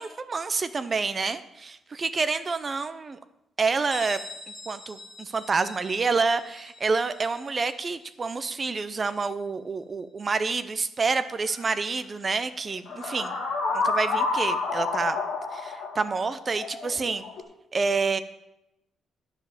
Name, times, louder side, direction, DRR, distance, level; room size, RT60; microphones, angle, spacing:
voice 1, 0.0-3.2 3.6-4.2 4.7-13.3 13.7-15.2 15.5-17.2 17.7-18.2, right 4 dB, 25° right, 12 dB, 0.5 m, -28 dB
Bell, 3.9-9.4, left 2 dB, 5° left, 1.6 m, -44 dB
sound 1, 11.5-11.6 12.9-17.4, left 3 dB, 60° left, 2.7 m, -29 dB
9.9 x 5.4 x 7.3 m, 0.89 s
cardioid pair, 170°, 0 cm